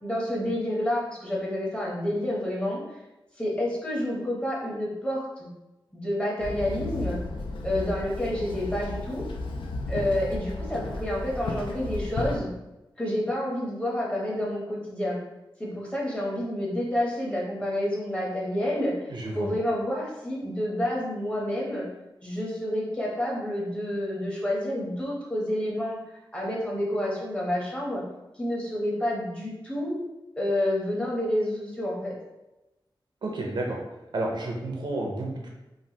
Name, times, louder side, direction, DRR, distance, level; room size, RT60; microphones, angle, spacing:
voice 1, 0.0-2.8 3.4-5.5 5.9-7.2 7.6-9.2 9.9-12.5 13.0-15.2 15.6-19.1 19.3-21.8 22.2-28.0 28.4-30.0 30.4-32.1, left 1 dB, 15° left, -4 dB, 0.7 m, -29 dB
Walk footsteps / Chatter / Hiss, 6.4-12.4, left 2 dB, 85° left, 0.4 m, -33 dB
voice 2, 19.1-19.5 33.2-33.8 34.1-35.5, right 2 dB, 60° right, 0 dB, 0.5 m, -31 dB
3.3 x 2.1 x 2.7 m, 1.0 s
wide cardioid pair, 145°, 9 cm